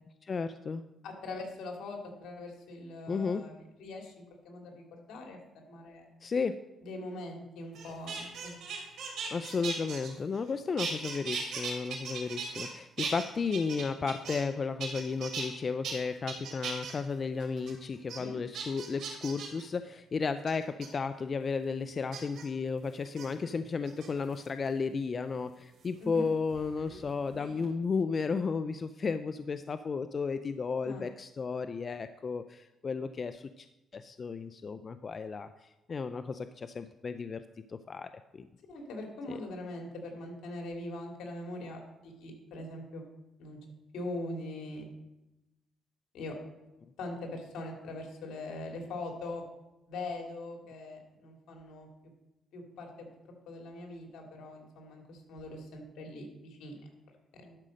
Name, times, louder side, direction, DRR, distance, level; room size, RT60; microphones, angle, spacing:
voice 1, 0.2-0.8 3.1-3.5 6.2-6.6 9.3-33.7 33.9-37.4 37.7-38.5 39.3-39.4, left 5 dB, 40° left, 10 dB, 0.4 m, -33 dB
voice 2, 1.0-3.5 3.8-4.1 4.4-5.4 5.6-6.1 6.8-8.5 18.2-18.4 26.0-26.3 30.8-31.1 38.7-43.0 43.4-43.6 43.9-44.9 46.1-46.4 47.0-49.4 49.9-51.9 52.5-56.9 57.3-57.6, left 2 dB, 80° left, 2 dB, 2.4 m, -42 dB
sound 1, 7.7-10.5 10.8-12.7 13.0-14.5 14.8-15.5 15.8-15.9 16.3-16.9 17.4-17.7 18.1-18.2 18.5-19.6 20.5-20.9 22.1-22.4 23.0-23.3 23.8-24.4 25.8-27.0 27.3-27.7, right 5 dB, 70° right, 3.1 m, -38 dB
12.0 x 5.1 x 6.4 m, 0.97 s
cardioid pair, 90°, 0 cm